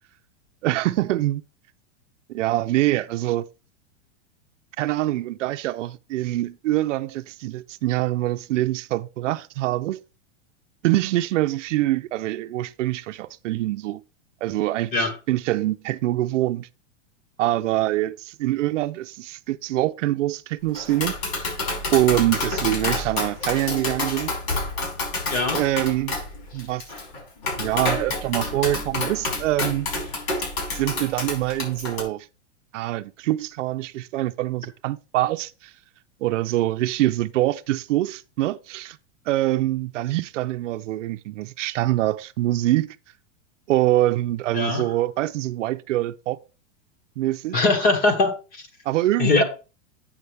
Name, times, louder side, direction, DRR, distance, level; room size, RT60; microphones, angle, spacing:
voice 1, 0.6-1.4 2.3-3.5 4.8-10.0 10.8-14.0 14.4-16.7 17.4-21.1 21.9-24.3 25.5-26.1 26.5-26.8 27.6-29.9 30.7-32.3 32.7-35.7 36.2-39.0 39.3-43.0 43.7-46.4 47.2-47.6 48.9-49.4, right 15 dB, 85° right, 0.6 m, -24 dB
Tap, 20.7-32.0, left 3 dB, 60° left, 5.4 m, -28 dB
voice 2, 25.3-25.6 44.5-44.8 47.5-48.6 49.2-49.4, left 3 dB, 25° left, 1.4 m, -21 dB
8.7 x 7.0 x 3.3 m
supercardioid pair, 160°, 36 cm